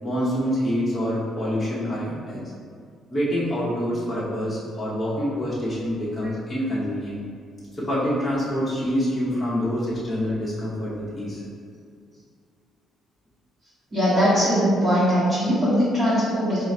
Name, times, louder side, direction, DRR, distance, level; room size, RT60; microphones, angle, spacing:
voice 1, 0.0-2.4 3.1-7.2 7.7-11.4, equal, 15° left, -9 dB, 1.0 m, -26 dB
voice 2, 13.9-16.6, equal, 30° right, -13 dB, 1.5 m, -20 dB
3.8 x 2.5 x 4.3 m, 2.1 s
cardioid pair, 110°, 0 cm